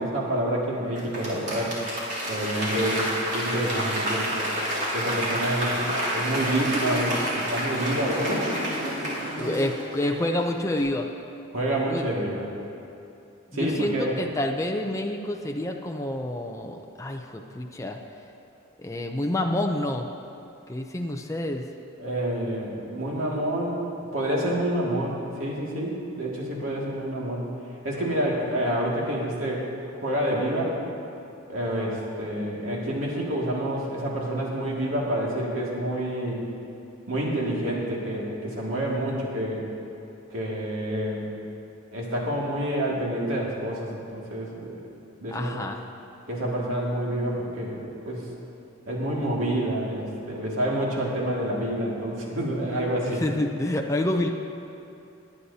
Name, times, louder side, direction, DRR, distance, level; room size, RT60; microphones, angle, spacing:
voice 1, 0.0-1.8 2.3-4.4 4.9-8.5 11.5-12.4 13.5-14.2 22.0-23.8 24.1-27.5 27.8-29.7 30.0-30.8 31.5-36.4 37.1-39.7 40.3-41.3 41.9-44.8 45.2-45.6 46.3-48.3 48.9-53.2, right 1 dB, 85° right, -4 dB, 2.2 m, -28 dB
Applause / Crowd, 1.0-10.4 10.8-10.9, right 1 dB, 60° right, 2.9 m, -29 dB
voice 2, 9.0-11.1 11.9-12.1 13.5-18.0 18.8-20.1 20.7-21.6 45.3-45.8 53.0-54.3, left 1 dB, 15° left, 2 dB, 0.5 m, -28 dB
20.0 x 9.4 x 2.8 m, 2.7 s
head